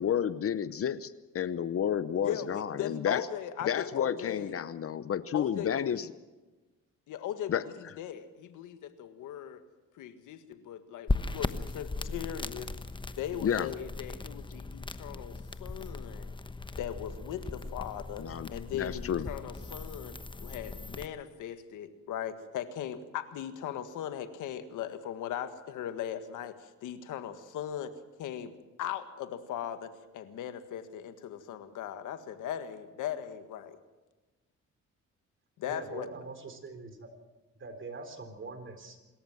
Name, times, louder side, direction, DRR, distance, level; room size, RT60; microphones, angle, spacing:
voice 1, 0.0-3.3 3.6-6.1 7.5-7.6 13.4-13.7 18.2-19.3, left 8 dB, 50° left, 15 dB, 0.8 m, -31 dB
voice 2, 2.2-4.6 5.3-6.1 7.1-9.6 9.9-12.7 13.2-16.3 16.8-20.1 20.4-27.9 28.2-33.8 35.6-36.1, left 10 dB, 85° left, 9 dB, 1.7 m, -39 dB
sound 1, 11.1-21.1, left 3 dB, 15° left, 1.0 m, -38 dB
voice 3, 35.7-37.1 37.6-39.0, right 3 dB, 40° right, 8 dB, 3.8 m, -43 dB
26.0 x 14.0 x 7.7 m, 1.2 s
cardioid pair, 90°, 30 cm